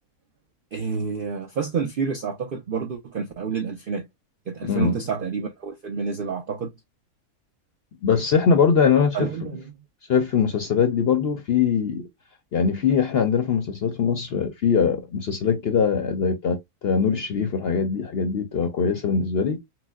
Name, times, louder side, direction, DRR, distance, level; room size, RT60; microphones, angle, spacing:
voice 1, 0.7-4.1 4.5-6.7 9.1-9.7, right 5 dB, 85° right, 0.4 m, -29 dB
voice 2, 4.6-5.0 8.0-9.2 10.1-12.0 12.5-19.6, left 6 dB, 60° left, 0.6 m, -22 dB
5.9 x 2.0 x 2.3 m
omnidirectional pair, 1.6 m